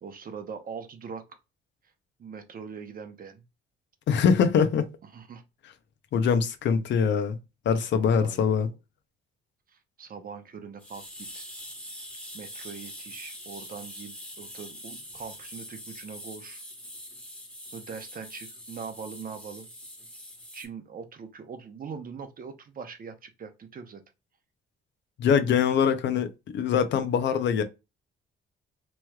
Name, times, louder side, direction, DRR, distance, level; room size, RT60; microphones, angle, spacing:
voice 1, 0.0-1.4 2.2-3.4 5.1-5.4 8.0-8.7 9.7-11.5 12.3-16.6 17.7-19.7 20.5-24.0 25.9-26.0, right 6 dB, 45° right, 0.8 m, -42 dB
voice 2, 4.1-4.8 6.1-7.4 7.7-8.7 25.2-26.3 26.5-27.6, left 7 dB, 65° left, 0.6 m, -23 dB
sound 1, 10.8-20.7, equal, 5° left, 1.2 m, -44 dB
3.1 x 3.0 x 2.3 m
cardioid pair, 90°, 20 cm